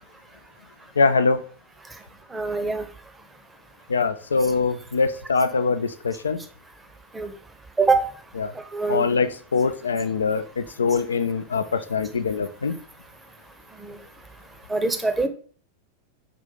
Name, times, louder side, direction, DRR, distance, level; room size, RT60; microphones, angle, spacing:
voice 1, 1.0-1.4 3.9-6.4 8.4-8.5 8.9-12.8, left 4 dB, 70° left, 12 dB, 0.3 m, -23 dB
voice 2, 2.3-2.9 7.1-7.3 7.8-8.1 8.5-9.0 13.7-14.0 14.7-15.3, right 3 dB, 10° right, 7 dB, 0.7 m, -24 dB
5.5 x 2.4 x 3.8 m, 0.44 s
figure-of-eight pair, 90°, 0 cm